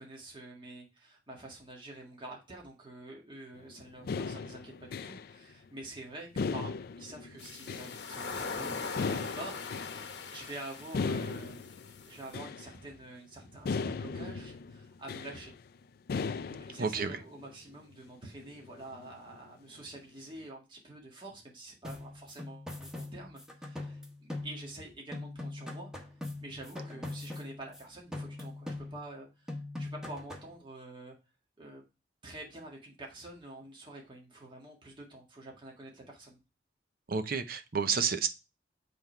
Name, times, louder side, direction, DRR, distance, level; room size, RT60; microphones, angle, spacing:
voice 1, 0.0-10.0 10.3-11.7 12.0-15.5 16.4-25.9 26.4-31.2 31.6-31.8 32.2-36.4, right 2 dB, 30° right, -2 dB, 1.8 m, -47 dB
sound 1, 3.6-5.4 5.6-5.7 6.4-8.4 8.9-10.3 10.8-12.8 13.1-13.2 13.5-15.6 16.1-17.1 17.4-17.5 17.9-18.1 18.4-19.5, left 4 dB, 60° left, 0.4 m, -37 dB
sound 2, 7.4-12.3, left 4 dB, 80° left, 0.9 m, -41 dB
voice 2, 16.8-17.2 37.1-38.3, right 5 dB, 60° right, 9 dB, 0.7 m, -30 dB
sound 3, 21.8-24.9 25.1-27.8 28.1-29.2 29.5-30.6, left 2 dB, 5° right, 1.1 m, -42 dB
7.8 x 3.5 x 4.4 m, 0.27 s
head